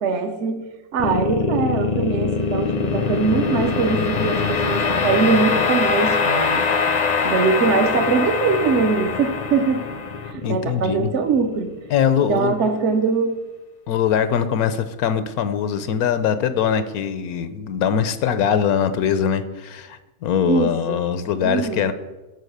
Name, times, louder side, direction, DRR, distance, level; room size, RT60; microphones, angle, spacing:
voice 1, 0.0-0.6 0.9-6.6 7.2-9.8 10.2-11.7 12.3-13.4 20.4-21.0 21.4-21.9, right 4 dB, 55° right, 6 dB, 1.0 m, -22 dB
sound 1, 1.0-12.2, left 5 dB, 40° left, 0.6 m, -23 dB
voice 2, 10.4-11.1 11.9-12.6 13.9-21.9, left 8 dB, 80° left, 12 dB, 1.2 m, -22 dB
12.0 x 4.8 x 6.6 m, 1.1 s
omnidirectional pair, 1.6 m